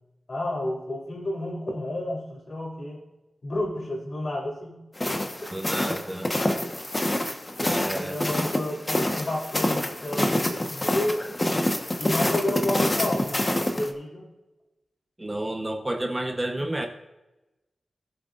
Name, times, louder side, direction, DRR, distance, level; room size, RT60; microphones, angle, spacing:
voice 1, 0.3-3.0 3.4-4.8 5.4-5.5 7.6-11.3 12.0-14.3, left 1 dB, 55° left, -2 dB, 3.7 m, -31 dB
sound 1, 5.0-13.9, left 1 dB, 25° left, 1.3 m, -27 dB
voice 2, 5.5-6.3 7.6-8.2 15.2-16.9, right 1 dB, 20° right, 4 dB, 1.0 m, -30 dB
17.0 x 7.7 x 2.6 m, 1.0 s
wide cardioid pair, 85°, 0 cm